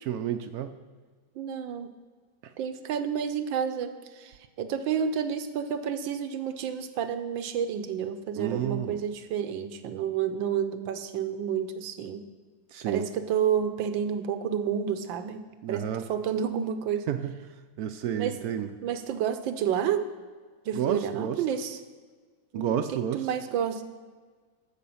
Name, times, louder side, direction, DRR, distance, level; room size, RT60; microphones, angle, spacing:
voice 1, 0.1-0.7 2.4-2.5 8.4-9.0 12.7-13.1 15.6-16.0 17.1-17.3 17.8-18.7 20.8-21.4 22.5-23.3, right 9 dB, 70° right, 9 dB, 0.9 m, -30 dB
voice 2, 1.3-1.9 2.6-12.3 12.8-17.1 18.1-18.4 18.8-20.0 20.6-21.8 22.5-23.8, right 8 dB, 85° right, 9 dB, 1.5 m, -30 dB
13.5 x 5.0 x 7.0 m, 1.5 s
omnidirectional pair, 2.0 m